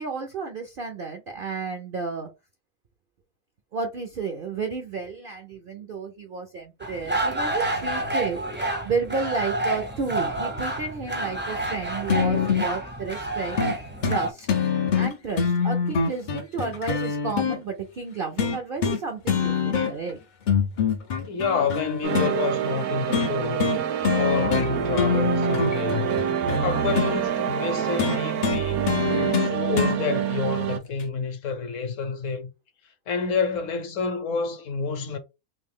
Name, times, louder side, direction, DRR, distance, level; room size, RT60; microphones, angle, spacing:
voice 1, 0.0-2.3 3.7-8.4 8.8-13.6 14.1-14.5 15.0-20.2, right 4 dB, 60° right, 0.5 m, -32 dB
sound 1, 6.8-14.3, right 2 dB, 15° right, 0.4 m, -29 dB
voice 2, 7.5-7.8 21.2-23.8 24.1-26.2 26.6-28.8 29.2-32.5 33.1-35.2, left 5 dB, 65° left, 1.0 m, -28 dB
sound 2, 12.1-12.7 13.6-13.8 14.0-14.2 14.5-17.6 18.4-19.0 19.3-20.1 20.5-22.3 23.1-23.3 23.6-23.8 24.0-24.7 24.9-27.2 28.0-30.0 31.0-31.1, left 6 dB, 85° left, 0.4 m, -24 dB
sound 3, 22.0-30.8, right 9 dB, 85° right, 1.1 m, -26 dB
3.1 x 2.7 x 3.6 m
omnidirectional pair, 1.5 m